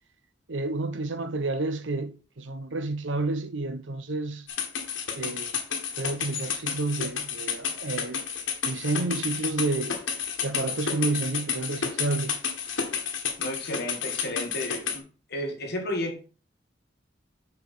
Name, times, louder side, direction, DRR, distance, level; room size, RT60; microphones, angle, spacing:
voice 1, 0.5-4.4 5.1-5.5 6.0-8.2 8.6-10.0 10.4-12.4, right 2 dB, 70° right, 0.8 m, -30 dB
sound 1, 4.5-15.0, left 7 dB, 85° left, 1.4 m, -31 dB
voice 2, 13.4-15.0 15.3-16.2, left 1 dB, 60° left, 1.9 m, -32 dB
6.4 x 5.2 x 4.4 m
head